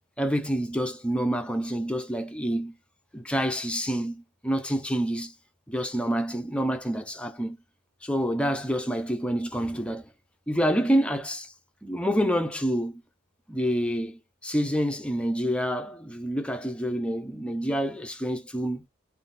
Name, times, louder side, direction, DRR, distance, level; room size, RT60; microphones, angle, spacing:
voice 1, 0.2-2.7 3.1-5.3 5.7-7.6 8.0-10.1 10.5-11.5 11.8-13.0 13.5-18.8, equal, 5° left, 0.6 m, -27 dB
3.7 x 2.6 x 4.1 m
head